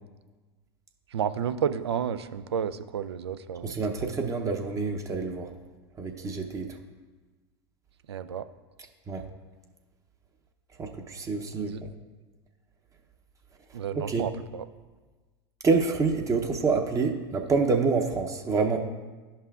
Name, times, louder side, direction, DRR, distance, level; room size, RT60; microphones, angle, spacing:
voice 1, 1.1-3.7 8.1-8.4 11.6-11.8 13.7-14.6, right 8 dB, 80° right, 13 dB, 0.4 m, -31 dB
voice 2, 3.6-5.5 6.0-6.7 9.1-9.3 10.8-11.7 14.1-14.2 15.6-18.8, right 4 dB, 25° right, 4 dB, 0.7 m, -27 dB
11.5 x 5.5 x 2.4 m, 1.3 s
hypercardioid pair, 90°, 14 cm